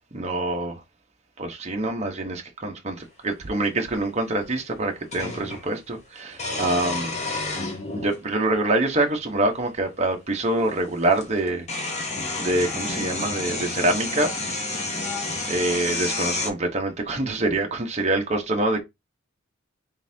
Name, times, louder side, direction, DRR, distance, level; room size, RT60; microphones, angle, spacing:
voice 1, 0.1-0.8 1.4-7.2 7.9-11.6 12.4-14.4 15.5-18.8, right 2 dB, 35° right, 0.9 m, -25 dB
sound 1, 3.4-3.5 5.1-5.6 6.3-8.2 9.1-9.2 10.7-10.8 11.1-16.5, left 2 dB, 35° left, 1.0 m, -30 dB
3.8 x 3.7 x 2.7 m
head